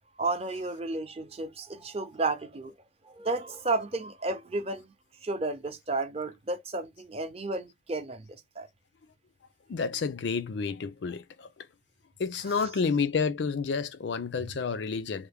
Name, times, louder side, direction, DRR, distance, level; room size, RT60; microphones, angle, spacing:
voice 1, 0.2-2.7 3.0-4.9 5.2-8.7 12.5-12.7, right 3 dB, 35° right, 0.6 m, -32 dB
voice 2, 9.7-11.7 12.2-15.3, left 5 dB, 70° left, 0.4 m, -30 dB
3.3 x 2.0 x 3.4 m
head